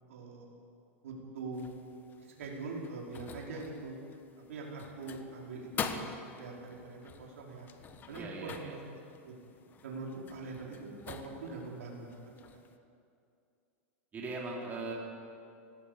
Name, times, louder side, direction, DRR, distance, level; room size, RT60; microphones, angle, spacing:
voice 1, 0.1-0.5 1.0-1.7 2.2-4.0 4.5-7.7 8.1-8.9 9.2-9.3 9.8-12.6, right 3 dB, 85° right, -2 dB, 5.3 m, -43 dB
sound 1, 1.5-12.8, left 6 dB, 25° left, 1.3 m, -46 dB
voice 2, 8.1-8.7 14.1-14.9, right 3 dB, 25° right, -3 dB, 4.1 m, -39 dB
18.5 x 17.0 x 8.6 m, 2.5 s
supercardioid pair, 135°, 7 cm